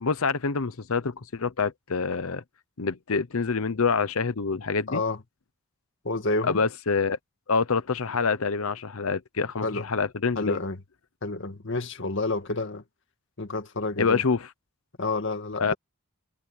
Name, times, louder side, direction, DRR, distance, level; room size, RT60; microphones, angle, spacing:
voice 1, 0.0-2.4 2.8-5.0 6.4-7.2 7.5-10.6 14.0-14.5 15.6-15.7, left 5 dB, 80° left, 0.8 m, -26 dB
voice 2, 4.9-5.2 6.0-6.6 9.6-9.9 10.4-10.8 11.2-12.8 13.4-14.2 15.0-15.7, left 2 dB, 60° left, 2.0 m, -29 dB
head